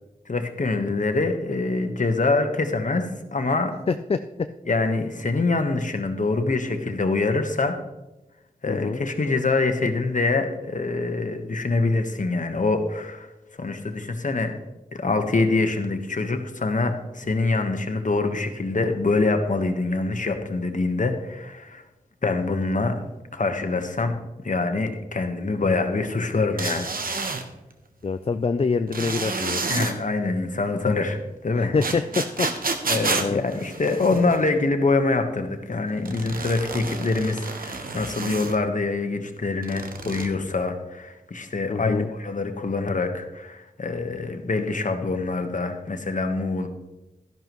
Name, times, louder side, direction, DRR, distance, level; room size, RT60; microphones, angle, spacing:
voice 1, 0.3-3.8 4.7-7.7 8.6-13.3 13.6-14.5 14.9-21.8 22.2-24.2 24.4-27.3 29.7-31.7 32.8-46.7, left 3 dB, 60° left, 6 dB, 1.2 m, -25 dB
voice 2, 3.9-4.5 8.7-9.0 28.0-29.6 31.6-32.5 33.2-33.4 41.7-42.1, left 4 dB, 40° left, 10 dB, 0.4 m, -25 dB
sound 1, 26.6-27.4 28.9-29.9 31.8-34.4 36.1-38.6 39.6-40.3, right 4 dB, 75° right, 1.0 m, -29 dB
12.5 x 11.0 x 3.1 m, 1.0 s
cardioid pair, 50°, 15 cm